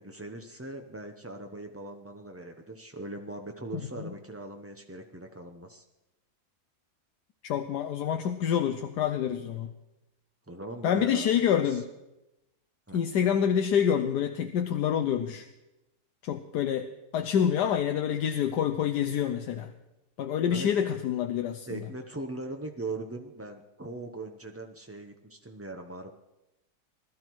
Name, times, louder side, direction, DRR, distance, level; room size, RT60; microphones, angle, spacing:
voice 1, 0.0-5.8 10.5-11.3 11.6-11.8 12.9-13.0 20.5-20.7 21.7-26.1, right 2 dB, 20° right, 3 dB, 0.4 m, -40 dB
voice 2, 7.4-9.7 10.8-11.9 12.9-15.5 16.2-16.9 17.1-19.7 20.2-21.7, left 8 dB, 85° left, 6 dB, 1.4 m, -27 dB
20.5 x 12.5 x 4.6 m, 0.97 s
omnidirectional pair, 1.7 m